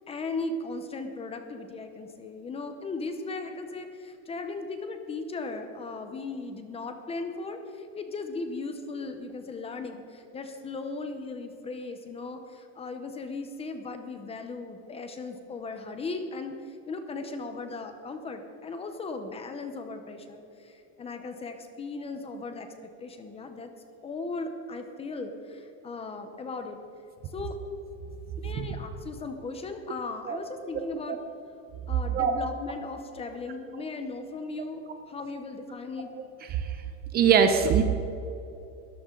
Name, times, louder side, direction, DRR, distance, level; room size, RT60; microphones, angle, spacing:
voice 1, 0.1-22.7 23.0-23.7 24.0-26.8 27.2-27.6 28.4-31.2 31.9-36.1, left 3 dB, 15° left, 7 dB, 0.8 m, -37 dB
voice 2, 37.1-37.8, right 7 dB, 25° right, 7 dB, 0.7 m, -21 dB
22.0 x 14.0 x 3.9 m, 2.9 s
cardioid pair, 175°, 39 cm